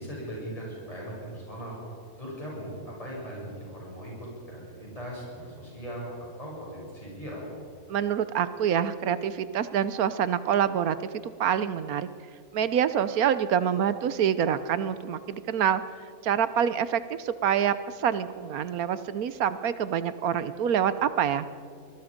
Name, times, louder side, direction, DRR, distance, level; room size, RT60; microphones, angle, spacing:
voice 1, 0.0-1.8 2.2-7.5, right 1 dB, 20° left, -5 dB, 8.0 m, -39 dB
voice 2, 7.9-11.0 11.2-12.1 12.5-15.8 16.2-21.5, right 9 dB, 75° right, 13 dB, 1.3 m, -26 dB
24.5 x 21.5 x 5.2 m, 2.3 s
omnidirectional pair, 1.6 m